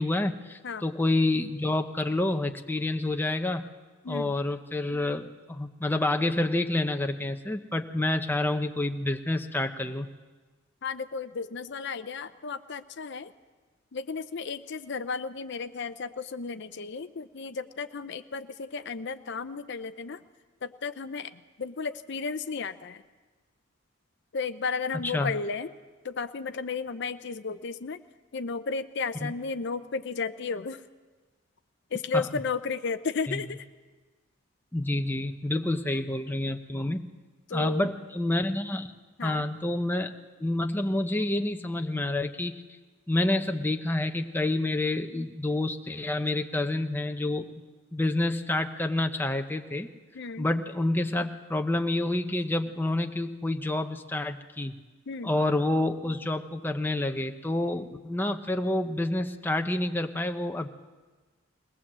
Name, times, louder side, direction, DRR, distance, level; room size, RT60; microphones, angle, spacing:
voice 1, 0.0-3.7 4.1-10.1 24.9-25.3 29.2-29.3 32.1-32.3 33.3-33.6 34.7-37.1 37.5-38.9 39.2-40.1 40.4-42.6 43.1-47.5 47.9-49.9 50.4-54.7 55.2-60.7, left 2 dB, 10° left, 5 dB, 0.7 m, -28 dB
voice 2, 10.8-13.3 13.9-20.2 20.6-21.3 21.6-23.0 24.3-25.7 26.0-28.0 28.3-30.8 31.9-33.6 37.5-37.8 39.2-39.4 50.2-50.5 55.1-55.3, left 4 dB, 55° left, 11 dB, 0.6 m, -33 dB
21.5 x 19.0 x 7.5 m, 1.3 s
head